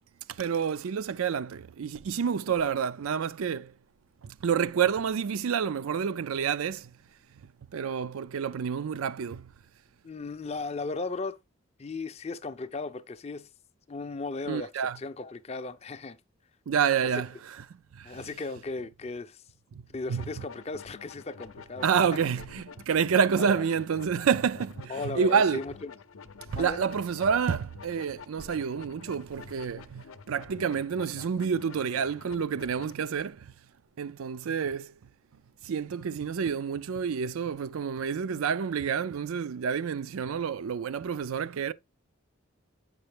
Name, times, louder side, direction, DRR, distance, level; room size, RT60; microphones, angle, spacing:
voice 1, 0.3-3.7 4.2-6.9 7.3-9.5 14.5-15.0 16.7-18.3 19.7-19.8 20.1-20.4 21.8-25.6 26.5-33.5 34.0-34.9 35.6-41.7, right 7 dB, 85° right, 0.4 m, -29 dB
voice 2, 10.0-11.4 11.8-13.5 13.9-14.7 15.0-16.2 18.0-19.4 19.9-21.9 23.4-23.6 24.9-25.9 26.6-26.8, left 3 dB, 30° left, 0.4 m, -36 dB
sound 1, 20.1-32.9, left 5 dB, 80° left, 0.6 m, -49 dB
7.7 x 5.4 x 3.3 m
head